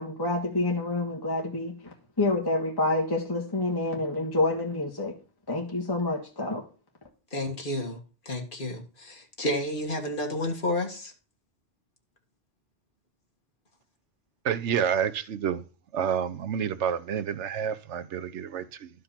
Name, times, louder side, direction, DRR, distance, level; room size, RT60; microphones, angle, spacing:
voice 1, 0.0-5.1 5.5-6.6, left 2 dB, 20° left, 1.6 m, -28 dB
voice 2, 7.3-8.0 8.3-11.1, left 1 dB, 45° left, 2.0 m, -31 dB
voice 3, 14.4-15.6 15.9-18.9, right 8 dB, 75° right, 1.0 m, -29 dB
12.0 x 5.1 x 5.8 m
omnidirectional pair, 1.2 m